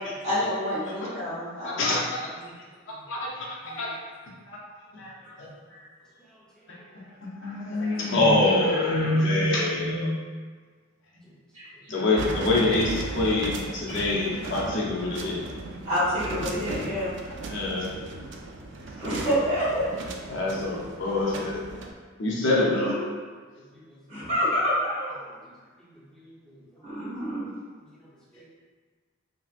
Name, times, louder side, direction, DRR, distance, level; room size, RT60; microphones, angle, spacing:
voice 1, 0.2-1.8 2.4-2.5 3.6-3.8 5.7-5.8 11.5-11.6 15.8-17.1 19.0-19.9 22.5-23.0 24.1-25.2 26.8-27.5, equal, 35° right, -14 dB, 1.5 m, -28 dB
voice 2, 1.6-2.2 3.1-4.0 4.5-4.6 4.9-5.1 5.4-5.5 6.9-10.1 11.9-15.4 16.3-16.4 17.5-17.9 20.3-21.6 22.2-22.9, left 2 dB, 65° left, -4 dB, 0.6 m, -25 dB
sound 1, 12.2-21.9, right 2 dB, 60° right, 0.4 m, -36 dB
voice 3, 23.7-24.2 25.8-26.6 27.8-28.0 28.3-28.4, equal, 5° left, -8 dB, 0.7 m, -54 dB
3.2 x 2.8 x 2.4 m, 1.5 s
head